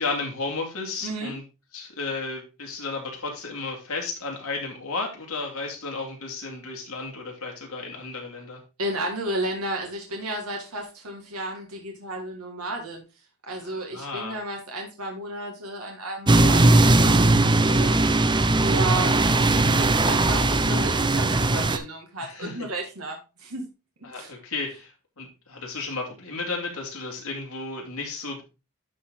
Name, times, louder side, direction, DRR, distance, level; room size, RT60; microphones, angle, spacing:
voice 1, 0.0-1.4 1.7-8.6 13.6-14.4 22.2-22.7 24.0-28.4, left 3 dB, 80° left, 1 dB, 2.6 m, -33 dB
voice 2, 1.0-1.3 8.8-13.0 13.5-23.7 24.1-24.3, right 1 dB, 85° right, 1 dB, 1.7 m, -33 dB
sound 1, 16.3-21.8, right 2 dB, 20° right, 0.6 m, -19 dB
11.5 x 4.1 x 3.7 m, 0.29 s
head